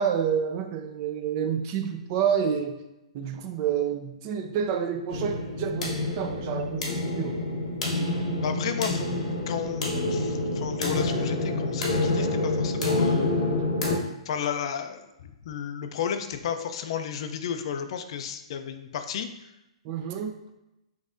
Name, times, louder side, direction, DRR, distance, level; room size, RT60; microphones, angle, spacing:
voice 1, 0.0-2.8 3.1-7.4 19.8-20.4, right 8 dB, 35° right, 6 dB, 0.4 m, -28 dB
sound 1, 5.1-13.9, left 2 dB, 85° left, 1.1 m, -27 dB
voice 2, 8.4-9.1 9.5-13.4 14.3-19.3, left 8 dB, 55° left, 8 dB, 0.4 m, -33 dB
6.1 x 2.6 x 2.5 m, 0.92 s
hypercardioid pair, 145°, 3 cm